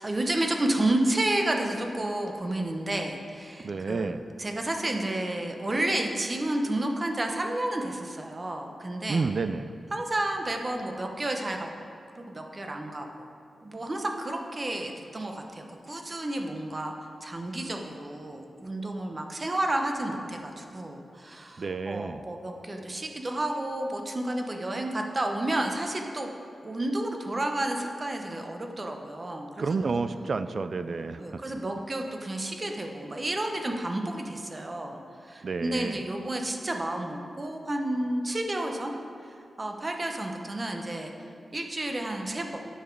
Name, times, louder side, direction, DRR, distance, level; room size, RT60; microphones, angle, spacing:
voice 1, 0.0-4.1 4.4-9.3 9.9-11.7 12.1-13.1 13.6-16.9 17.2-26.3 26.6-30.0 31.2-35.0 35.2-38.9 39.6-41.1 41.5-42.6, right 1 dB, 30° right, 3 dB, 0.9 m, -31 dB
voice 2, 3.6-4.2 9.1-9.7 21.6-22.2 29.6-31.4 35.4-36.0, right 4 dB, 55° right, 11 dB, 0.3 m, -30 dB
10.0 x 7.2 x 4.6 m, 2.5 s
wide cardioid pair, 100°, 0 cm